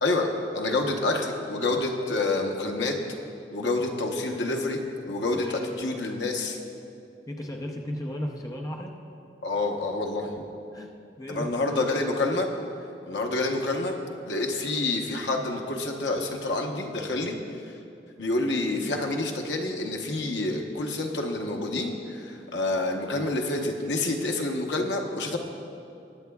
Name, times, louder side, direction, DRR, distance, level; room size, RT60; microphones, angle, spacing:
voice 1, 0.0-3.0 3.5-4.8 5.1-5.5 5.8-6.6 9.4-10.3 11.3-12.5 13.0-13.9 14.3-17.7 18.2-25.4, left 2 dB, 75° left, 2 dB, 1.0 m, -28 dB
voice 2, 5.4-5.9 7.3-9.0 10.7-10.9 11.2-11.5, left 1 dB, 20° left, 1 dB, 0.7 m, -35 dB
21.5 x 8.7 x 2.3 m, 2.6 s
head